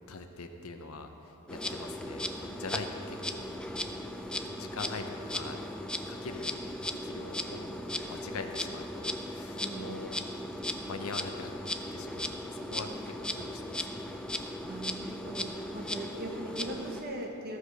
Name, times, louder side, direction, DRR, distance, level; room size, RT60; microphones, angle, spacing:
voice 1, 0.1-3.5 4.5-5.7 6.1-7.7 8.0-10.2 10.9-13.9, left 3 dB, 85° left, 6 dB, 0.8 m, -43 dB
Insect, 1.5-17.0, left 1 dB, 5° left, 0.4 m, -37 dB
voice 2, 9.6-10.0 14.6-17.6, right 1 dB, 45° right, 1 dB, 1.2 m, -40 dB
14.5 x 5.0 x 6.3 m, 2.9 s
head